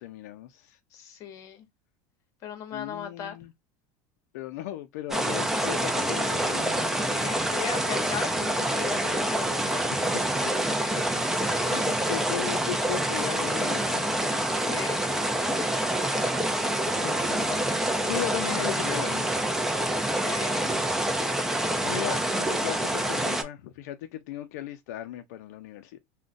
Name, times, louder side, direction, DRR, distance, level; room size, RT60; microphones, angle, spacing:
voice 1, 0.0-0.8 2.7-3.5 4.3-6.9 9.7-11.2 11.6-14.0 17.0-17.4 17.7-19.5 21.8-26.0, left 12 dB, 80° left, 0.4 m, -37 dB
voice 2, 0.9-1.6 2.4-3.4 7.1-9.8 14.7-15.1 19.9-20.6, left 8 dB, 40° left, 0.8 m, -37 dB
sound 1, 5.1-23.4, right 1 dB, 5° right, 0.4 m, -27 dB
3.7 x 2.1 x 2.4 m
supercardioid pair, 155°, 9 cm